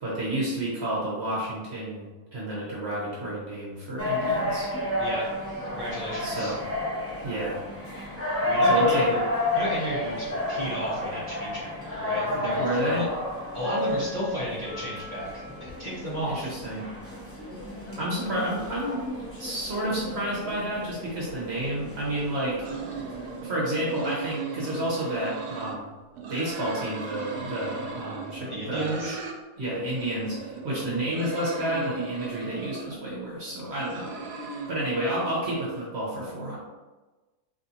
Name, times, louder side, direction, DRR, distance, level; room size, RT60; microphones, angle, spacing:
voice 1, 0.0-2.1 2.3-4.7 6.2-6.6 7.2-7.6 8.7-9.1 12.5-13.1 16.3-16.8 18.0-19.0 19.4-22.6 23.4-25.9 26.3-29.1 29.6-34.1 34.7-36.6, right 1 dB, 50° right, -6 dB, 1.1 m, -30 dB
sound 1, 4.0-23.4, left 1 dB, 10° left, 0.9 m, -31 dB
voice 2, 5.7-6.6 8.5-9.2 9.5-13.1 13.5-16.5 28.5-29.2, equal, 35° left, -9 dB, 1.1 m, -33 dB
sound 2, 22.6-25.8 26.1-29.4 29.7-33.0 33.5-35.7, right 5 dB, 90° right, 1.2 m, -38 dB
4.3 x 3.2 x 2.7 m, 1.2 s
omnidirectional pair, 1.6 m